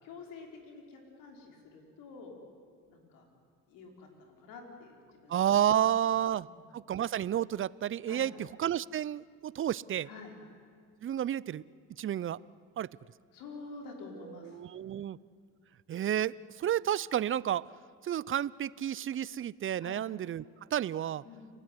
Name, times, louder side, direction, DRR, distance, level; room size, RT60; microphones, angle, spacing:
voice 1, 0.0-2.4 2.9-3.3 3.7-5.0 5.2-5.4 5.9-6.1 6.4-6.6 8.1-8.3 10.0-10.3 13.3-14.6 19.8-20.0 21.2-21.4, left 4 dB, 80° left, 2 dB, 5.4 m, -48 dB
voice 2, 5.3-6.5 6.7-10.1 11.0-11.6 12.0-12.4 12.8-12.9 14.4-15.2 15.9-17.6 18.0-20.4 20.7-21.2, right 10 dB, 40° right, 21 dB, 0.6 m, -31 dB
29.5 x 18.5 x 9.6 m, 2.1 s
supercardioid pair, 85°, 34 cm